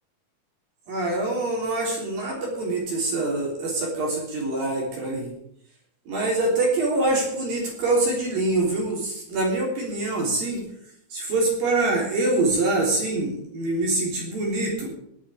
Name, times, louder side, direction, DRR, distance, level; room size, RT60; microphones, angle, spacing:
voice 1, 0.9-5.3 6.1-10.6 11.1-14.9, right 2 dB, 50° right, -2 dB, 4.8 m, -25 dB
19.5 x 8.6 x 5.0 m, 0.70 s
omnidirectional pair, 5.5 m